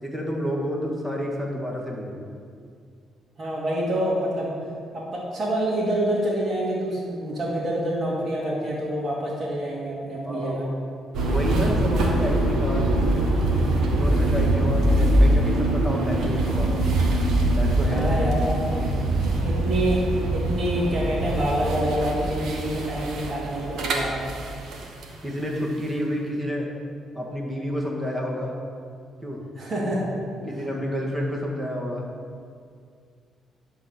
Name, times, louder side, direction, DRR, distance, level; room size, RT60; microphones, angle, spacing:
voice 1, 0.0-2.1 10.2-10.8 11.3-13.3 13.9-16.8 17.5-18.1 18.8-18.9 25.2-26.7 27.1-28.5 29.2-29.4 29.8-29.9 30.4-32.0, equal, 10° right, -1 dB, 1.8 m, -29 dB
voice 2, 3.4-4.5 4.9-10.7 17.9-18.9 19.4-20.0 20.3-24.4 29.6-30.1, right 1 dB, 40° right, -8 dB, 2.3 m, -27 dB
sound 1, 11.1-25.1, right 1 dB, 75° right, 1.4 m, -23 dB
10.5 x 4.0 x 7.1 m, 2.2 s
cardioid pair, 90°, 0 cm